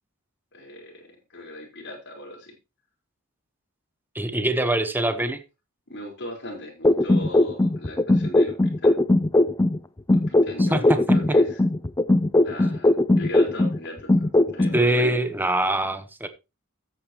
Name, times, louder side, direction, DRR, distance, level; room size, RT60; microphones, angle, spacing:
voice 1, 0.5-2.6 5.9-9.0 10.1-11.6 12.4-15.2, left 1 dB, 55° left, 4.3 m, -38 dB
voice 2, 4.1-5.4 10.6-10.8 14.7-16.3, right 1 dB, 10° right, 1.0 m, -23 dB
sound 1, 6.8-9.8 10.1-13.8 14.1-14.8, left 1 dB, 15° left, 0.4 m, -19 dB
14.0 x 8.7 x 3.0 m
head